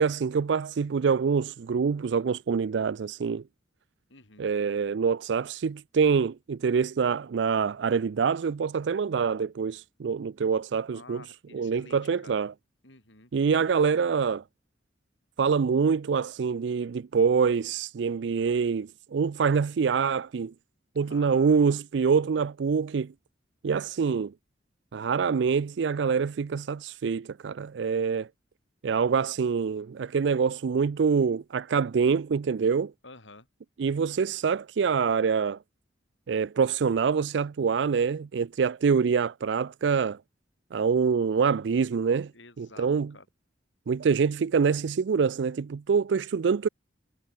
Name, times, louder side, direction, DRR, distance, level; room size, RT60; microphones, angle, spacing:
voice 1, 0.0-3.4 4.4-11.2 11.5-12.5 13.3-14.4 15.4-20.5 21.0-23.1 23.6-24.3 24.9-28.3 28.8-32.9 33.8-35.6 36.3-40.2 40.7-42.3 42.6-43.1 43.9-46.7, right 6 dB, 70° right, 0.4 m, -25 dB
voice 2, 4.1-4.5 10.9-12.3 12.8-13.3 20.9-21.6 22.1-22.5 33.0-33.5 42.3-43.3, left 3 dB, 85° left, 5.9 m, -50 dB
head